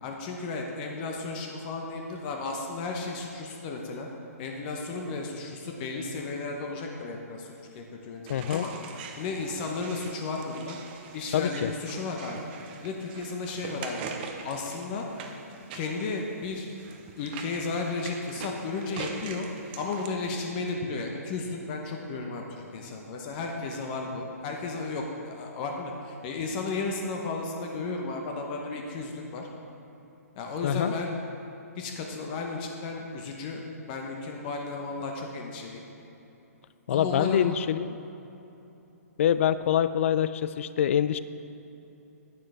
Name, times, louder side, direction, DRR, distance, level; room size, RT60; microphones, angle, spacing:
voice 1, 0.0-4.1 4.4-8.7 9.2-10.8 11.1-12.4 12.8-14.0 14.4-15.1 15.7-16.7 17.2-19.5 19.8-22.4 22.7-29.5 30.4-31.2 31.8-35.8 36.9-37.5, left 3 dB, 35° left, 1 dB, 1.0 m, -34 dB
voice 2, 8.3-8.6 11.3-11.7 30.6-30.9 36.9-37.9 39.2-41.2, left 10 dB, 50° left, 14 dB, 0.4 m, -25 dB
sound 1, 8.3-20.1, right 6 dB, 35° right, 0.8 m, -43 dB
10.0 x 9.5 x 3.4 m, 2.9 s
hypercardioid pair, 135°, 9 cm